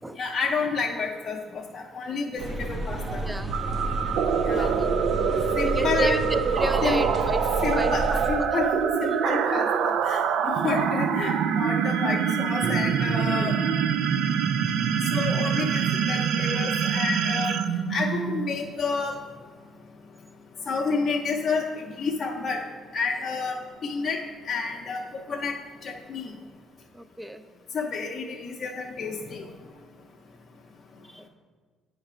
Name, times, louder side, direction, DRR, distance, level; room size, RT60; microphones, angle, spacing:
voice 1, 0.2-3.2 4.4-4.7 5.6-6.2 6.8-7.0 7.6-8.7 9.0-13.6 15.1-17.6 17.9-19.2 20.7-22.6 22.9-23.6 23.8-25.0 25.3-25.6 25.8-26.3 27.7-29.5, left 4 dB, 50° left, -1 dB, 0.6 m, -29 dB
sound 1, 2.4-8.3, right 2 dB, 45° right, 0.8 m, -31 dB
voice 2, 3.2-3.6 4.5-4.9 5.7-8.6 10.6-10.8 13.4-13.5 26.9-27.4 31.1-31.3, right 2 dB, 10° right, 10 dB, 0.5 m, -32 dB
sound 2, 3.5-18.6, right 7 dB, 75° right, 0.3 m, -25 dB
9.0 x 3.2 x 4.9 m, 1.5 s
supercardioid pair, 80°, 0 cm